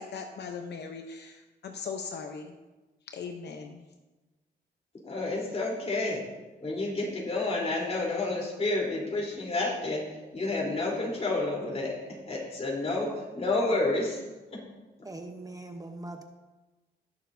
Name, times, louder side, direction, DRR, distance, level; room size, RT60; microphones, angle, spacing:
voice 1, 0.0-2.5 3.1-3.9, left 5 dB, 70° left, 4 dB, 0.8 m, -39 dB
voice 2, 5.0-6.2 6.6-10.0 10.3-11.9 12.3-14.2 14.5-14.6, left 2 dB, 35° left, -2 dB, 3.5 m, -30 dB
voice 3, 15.0-16.2, right 2 dB, 20° right, 4 dB, 0.9 m, -41 dB
19.0 x 6.8 x 2.7 m, 1.1 s
cardioid pair, 95°, 18 cm